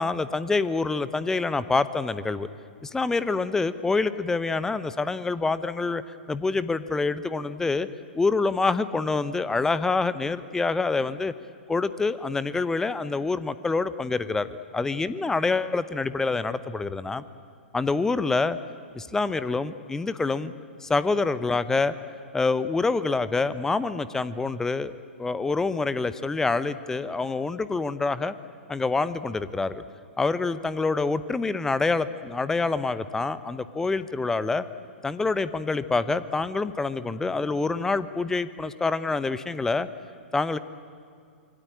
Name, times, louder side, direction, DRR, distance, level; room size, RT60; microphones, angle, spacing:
voice 1, 0.0-2.5 2.8-7.9 8.1-11.3 11.7-14.5 14.7-17.2 17.7-18.6 18.9-20.5 20.8-21.9 22.3-24.9 25.2-28.3 28.7-29.8 30.2-34.6 35.0-39.9 40.3-40.6, left 3 dB, 10° left, 14 dB, 0.8 m, -26 dB
26.0 x 23.5 x 8.8 m, 2.3 s
figure-of-eight pair, 110°, 6 cm